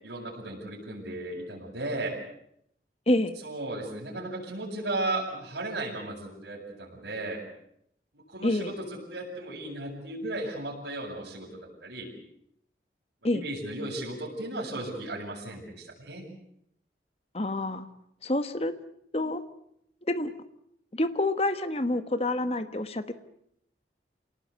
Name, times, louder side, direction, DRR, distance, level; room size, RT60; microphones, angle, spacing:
voice 1, 0.0-2.2 3.4-7.4 8.3-12.1 13.3-16.3, right 2 dB, 85° right, -8 dB, 7.1 m, -35 dB
voice 2, 3.1-3.4 8.4-8.7 13.2-13.4 17.3-17.9 18.2-18.7 19.1-19.4 20.1-20.3 20.9-23.1, left 1 dB, 35° left, 11 dB, 1.3 m, -27 dB
27.5 x 19.0 x 8.2 m, 0.74 s
head